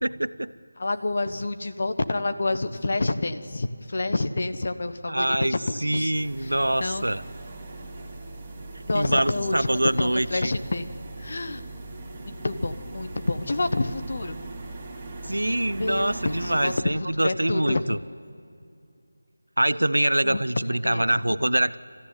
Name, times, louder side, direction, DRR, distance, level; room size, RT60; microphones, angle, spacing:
voice 1, 0.0-0.5 5.1-5.5 5.8-7.2 8.9-10.5 15.2-18.0 19.6-21.8, right 1 dB, 80° right, 16 dB, 0.7 m, -24 dB
voice 2, 0.8-6.1 6.4-6.5 6.8-7.1 8.9-10.9 11.2-11.6 12.2-14.4 15.7-18.0 20.2-21.5, left 2 dB, 50° left, 9 dB, 1.2 m, -28 dB
sound 1, 6.1-16.8, right 2 dB, 15° right, 2.6 m, -39 dB
27.0 x 14.5 x 9.6 m, 2.5 s
figure-of-eight pair, 165°, 0 cm